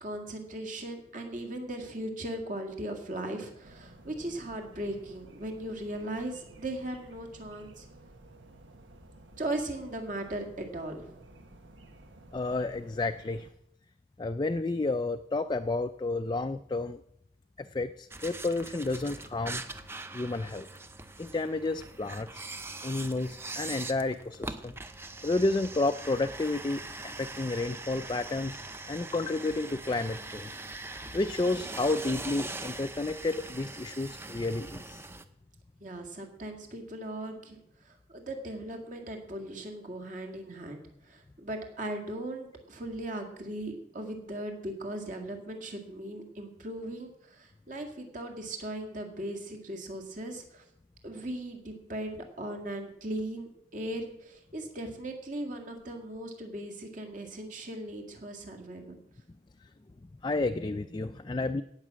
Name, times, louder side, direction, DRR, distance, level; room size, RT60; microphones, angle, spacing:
voice 1, 0.0-7.8 9.4-11.1 35.8-37.6 37.9-50.6 51.0-59.0, right 1 dB, 45° right, 3 dB, 2.1 m, -38 dB
sound 1, 3.6-13.5, right 1 dB, 90° right, 1.4 m, -54 dB
voice 2, 12.3-13.5 14.2-17.0 17.6-19.6 20.1-20.7 21.2-22.5 22.8-24.7 25.2-28.6 28.9-30.5 31.1-35.0 60.2-61.6, left 2 dB, 25° left, 9 dB, 0.4 m, -31 dB
sound 2, 18.1-35.2, right 2 dB, 15° right, 0.6 m, -42 dB
17.5 x 6.0 x 7.5 m, 0.79 s
head